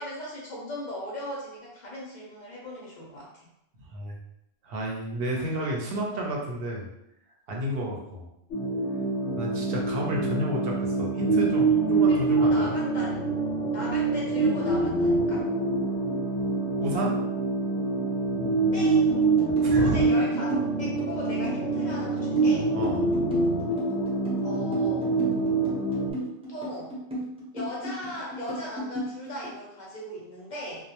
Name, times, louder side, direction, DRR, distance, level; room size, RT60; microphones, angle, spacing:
voice 1, 0.0-3.3 12.1-13.2 13.7-15.5 18.7-19.3 19.8-20.5 20.8-22.7 24.4-25.1 26.2-27.0 27.5-30.9, left 1 dB, 55° left, -4 dB, 0.6 m, -38 dB
voice 2, 4.6-6.9 7.5-8.3 9.3-12.8 16.8-17.2 19.6-20.1 22.7-23.1, right 1 dB, 65° right, -1 dB, 0.8 m, -31 dB
sound 1, 8.5-26.1, right 3 dB, 80° left, 0.8 m, -25 dB
sound 2, 19.1-29.6, equal, 10° right, 0.5 m, -36 dB
2.1 x 2.1 x 2.8 m, 0.82 s
omnidirectional pair, 1.1 m